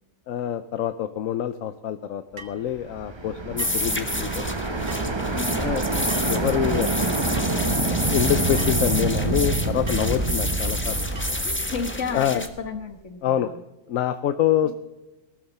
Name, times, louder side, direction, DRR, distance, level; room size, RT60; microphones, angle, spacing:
voice 1, 0.3-4.5 5.6-7.6 8.1-11.1 12.1-12.4 13.2-13.5 13.9-14.7, left 10 dB, 80° left, 10 dB, 1.1 m, -26 dB
sound 1, 2.4-2.6 3.6-3.9 4.9-5.1 6.1-6.4 7.3-7.5 8.6-8.8 9.9-10.1 11.2-11.5, right 3 dB, 50° right, 1.5 m, -41 dB
sound 2, 2.7-12.7, right 3 dB, 25° right, 0.9 m, -27 dB
sound 3, 3.6-12.5, left 1 dB, 10° left, 1.3 m, -30 dB
voice 2, 5.3-5.6 11.4-13.6 14.6-14.7, left 5 dB, 65° left, 7 dB, 1.9 m, -33 dB
18.0 x 13.5 x 4.2 m, 1.0 s
omnidirectional pair, 1.4 m